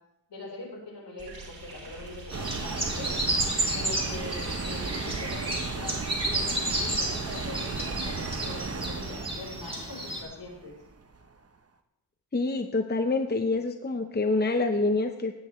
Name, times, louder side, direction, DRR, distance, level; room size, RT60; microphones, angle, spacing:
voice 1, 0.3-3.2 3.7-10.8, left 2 dB, 65° left, -1 dB, 4.5 m, -42 dB
sound 1, 1.2-8.2, right 2 dB, 70° right, 4.5 m, -46 dB
sound 2, 2.3-10.2, right 1 dB, 10° right, 2.9 m, -32 dB
sound 3, 2.3-11.3, right 4 dB, 30° right, 0.9 m, -36 dB
voice 2, 12.3-15.3, left 3 dB, 20° left, 6 dB, 0.8 m, -26 dB
17.0 x 10.5 x 3.2 m, 0.86 s
wide cardioid pair, 100°, 45 cm